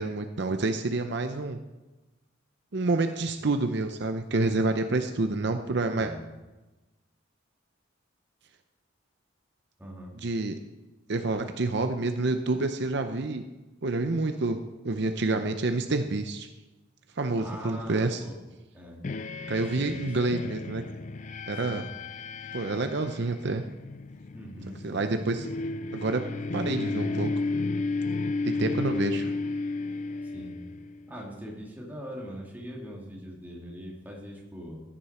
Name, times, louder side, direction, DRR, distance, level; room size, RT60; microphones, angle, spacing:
voice 1, 0.0-1.6 2.7-6.1 10.2-10.5 11.1-13.4 13.8-14.6 14.8-16.5 17.2-18.2 19.5-20.8 21.5-21.8 22.5-23.6 24.8-25.5 25.9-26.2 26.5-27.3 28.4-29.3, right 3 dB, 60° right, 7 dB, 0.7 m, -28 dB
voice 2, 5.9-6.3 9.8-10.1 17.4-18.4 18.7-19.0 19.7-20.5 21.6-21.8 24.3-24.8 30.2-30.6 31.1-34.8, equal, 10° right, -3 dB, 2.5 m, -42 dB
sound 1, 19.0-31.1, left 3 dB, 40° left, 0.4 m, -33 dB
15.0 x 10.0 x 4.3 m, 1.1 s
head